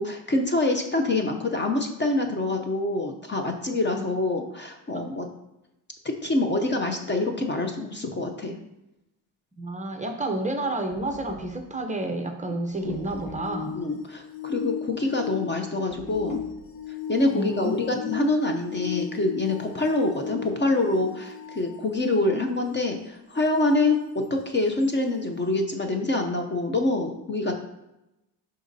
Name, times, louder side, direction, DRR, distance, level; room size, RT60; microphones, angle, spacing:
voice 1, 0.0-5.2 6.0-8.6 12.8-13.0 13.7-16.4 17.1-27.5, left 2 dB, 25° left, 4 dB, 0.6 m, -26 dB
voice 2, 9.6-13.8 17.3-18.0, right 2 dB, 15° right, 4 dB, 0.6 m, -30 dB
Knock, 10.9-11.8 12.9-13.6 15.9-16.6, equal, 40° left, 1.4 m, -45 dB
sound 1, 12.7-22.5 24.8-24.9, left 7 dB, 85° left, 0.8 m, -36 dB
11.5 x 3.9 x 2.7 m, 0.92 s
cardioid pair, 135°, 45 cm